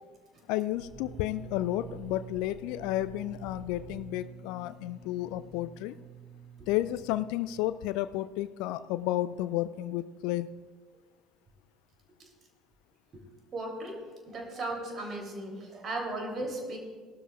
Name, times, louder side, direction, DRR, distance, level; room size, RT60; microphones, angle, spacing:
voice 1, 0.5-6.0 6.7-10.5, left 15 dB, 60° left, 15 dB, 0.3 m, -32 dB
sound 1, 0.7-8.4, right 6 dB, 20° right, 1.4 m, -48 dB
voice 2, 13.5-14.0 14.3-16.8, right 2 dB, 40° right, 1 dB, 3.0 m, -36 dB
18.0 x 12.5 x 2.4 m, 1.5 s
figure-of-eight pair, 60°, 0 cm